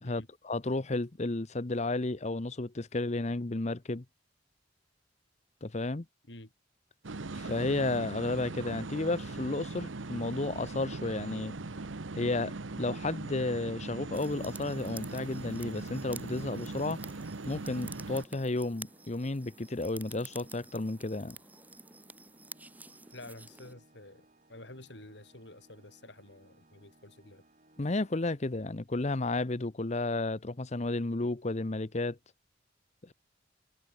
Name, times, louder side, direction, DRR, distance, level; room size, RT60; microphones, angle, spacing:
voice 1, 0.0-4.0 5.6-6.1 7.3-11.6 12.1-17.0 17.5-21.4 27.8-32.2, left 2 dB, 35° left, 0.9 m, -32 dB
sound 1, 7.0-18.2, right 3 dB, 85° right, 1.1 m, -40 dB
sound 2, 14.1-23.7, right 2 dB, 10° right, 3.1 m, -50 dB
Organ, 18.1-28.9, right 1 dB, 40° right, 7.2 m, -64 dB
voice 2, 23.1-27.4, left 1 dB, 65° left, 5.1 m, -50 dB
head